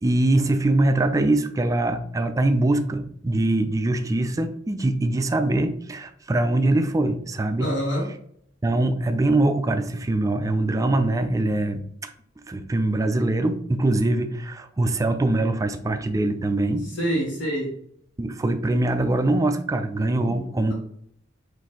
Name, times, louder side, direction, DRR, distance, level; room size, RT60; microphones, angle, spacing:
voice 1, 0.0-7.7 8.6-12.1 12.5-16.9 18.2-20.7, right 2 dB, 20° right, 8 dB, 0.3 m, -23 dB
voice 2, 7.6-8.1 16.8-17.7 20.2-20.7, equal, 75° left, -6 dB, 1.3 m, -27 dB
4.2 x 2.6 x 3.7 m, 0.69 s
head